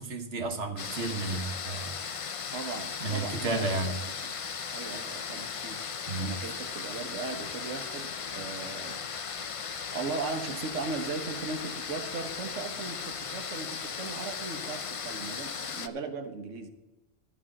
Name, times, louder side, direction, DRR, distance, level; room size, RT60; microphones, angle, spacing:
voice 1, 0.0-2.0 3.0-3.9 6.1-6.3, right 3 dB, 70° right, 5 dB, 1.5 m, -32 dB
sound 1, 0.8-15.9, left 6 dB, 50° left, 0.4 m, -37 dB
voice 2, 2.5-4.0 4.2-4.3 4.7-5.8 6.2-9.5 9.9-16.7, right 4 dB, 85° right, 7 dB, 1.5 m, -38 dB
13.5 x 5.0 x 7.5 m, 1.1 s
omnidirectional pair, 1.3 m